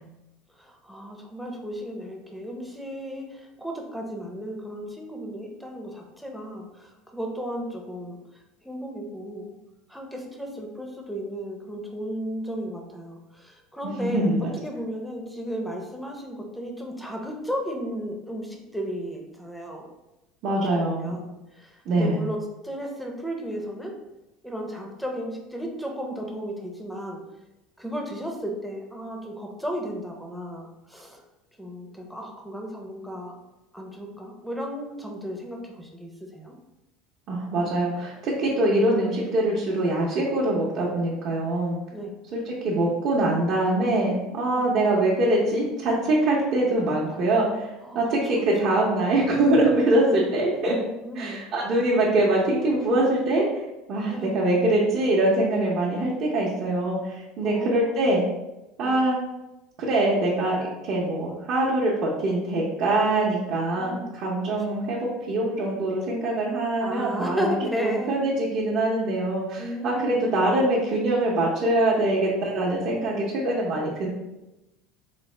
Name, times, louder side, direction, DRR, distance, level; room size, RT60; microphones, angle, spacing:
voice 1, 0.6-8.2 8.6-9.5 9.9-14.3 14.6-19.8 20.8-23.9 24.4-27.2 27.8-31.2 31.6-33.3 33.7-36.5 38.5-38.6 41.9-42.2 44.6-44.7 47.9-49.0 49.9-50.3 51.0-51.5 54.1-54.4 57.4-57.9 58.8-59.0 63.7-64.1 64.7-64.9 66.8-68.2 69.6-70.4, equal, ahead, 1 dB, 0.6 m, -34 dB
voice 2, 13.8-14.5 20.4-21.2 21.9-22.3 37.3-41.8 42.3-47.7 47.9-50.8 51.1-58.2 58.8-59.2 59.8-67.5 67.8-74.1, right 1 dB, 50° right, -5 dB, 0.7 m, -23 dB
4.0 x 2.0 x 3.2 m, 0.98 s
supercardioid pair, 130°, 0 cm